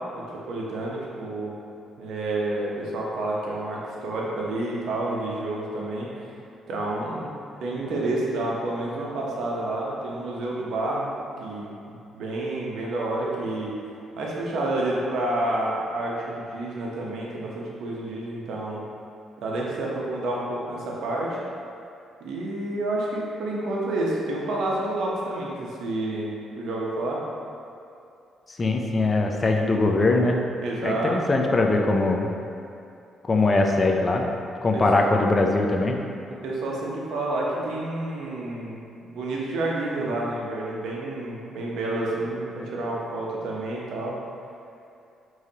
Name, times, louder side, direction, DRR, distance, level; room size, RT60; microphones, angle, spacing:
voice 1, 0.5-1.5 2.0-6.1 6.7-7.3 7.6-13.7 14.2-18.8 19.4-21.4 22.2-27.2 30.6-31.3 34.7-34.8 36.3-44.1, right 2 dB, 75° right, -4 dB, 0.8 m, -29 dB
voice 2, 28.6-30.4 30.8-32.3 33.2-34.3 34.6-36.0, left 2 dB, 30° left, 2 dB, 0.4 m, -21 dB
5.0 x 3.1 x 2.8 m, 2.6 s
cardioid pair, 90°, 0 cm